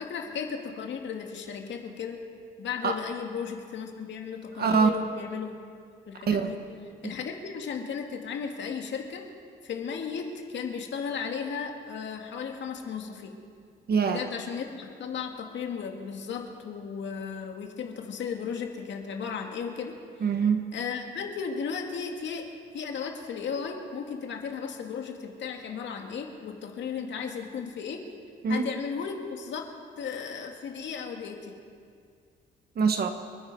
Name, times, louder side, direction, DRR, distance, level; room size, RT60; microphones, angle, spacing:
voice 1, 0.0-2.2 2.6-5.5 6.1-6.6 7.0-9.2 9.6-13.3 14.0-19.9 20.7-22.4 22.7-28.0 28.5-29.7 30.0-31.5, left 6 dB, 65° left, 3 dB, 2.0 m, -35 dB
voice 2, 4.6-4.9 6.3-6.5 13.9-14.2 20.2-20.6 28.4-28.7 32.7-33.1, right 5 dB, 50° right, 6 dB, 1.6 m, -23 dB
28.0 x 9.9 x 4.8 m, 2.2 s
cardioid pair, 90°, 20 cm